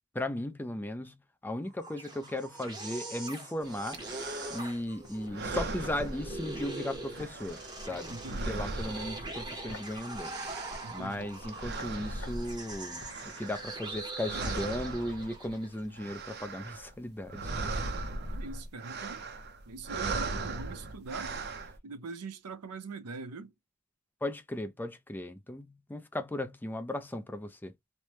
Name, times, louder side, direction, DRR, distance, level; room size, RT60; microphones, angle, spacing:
voice 1, 0.1-1.2 1.4-4.0 4.5-10.3 10.9-17.5 24.2-27.7, left 1 dB, 10° left, 0.3 m, -36 dB
sound 1, 1.7-15.8, right 2 dB, 20° right, 0.8 m, -42 dB
sound 2, 3.9-4.8 5.2-6.8 7.1-9.7 10.0-14.0 14.2-15.5 15.8-16.9 17.2-21.8, right 3 dB, 45° right, 0.5 m, -38 dB
sound 3, 5.0-14.0 14.3-14.4, left 1 dB, 65° left, 0.9 m, -50 dB
voice 2, 8.1-8.6 10.8-11.3 18.3-19.2 19.7-21.3 21.8-23.5, right 4 dB, 90° right, 0.6 m, -42 dB
3.2 x 2.1 x 2.8 m
head